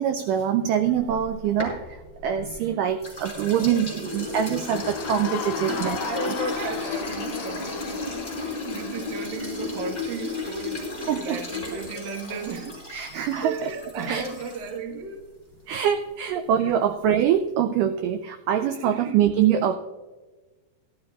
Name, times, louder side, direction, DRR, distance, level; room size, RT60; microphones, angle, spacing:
voice 1, 0.0-6.0 6.2-6.3 11.1-11.6 12.9-13.7 14.1-14.2 15.7-19.7, right 9 dB, 90° right, 8 dB, 1.8 m, -24 dB
sound 1, 1.0-2.6 3.0-14.8, left 3 dB, 10° left, 4.2 m, -34 dB
voice 2, 2.4-3.2 4.0-4.3 5.7-12.8 13.4-15.3 16.6-16.8 18.5-19.2 19.5-19.7, right 4 dB, 65° right, 2 dB, 1.1 m, -35 dB
Crowd, 4.6-9.4, left 10 dB, 80° left, 2.4 m, -36 dB
sound 2, 9.3-14.7, left 1 dB, 20° right, 4.0 m, -53 dB
17.5 x 12.0 x 2.4 m, 1.2 s
omnidirectional pair, 4.3 m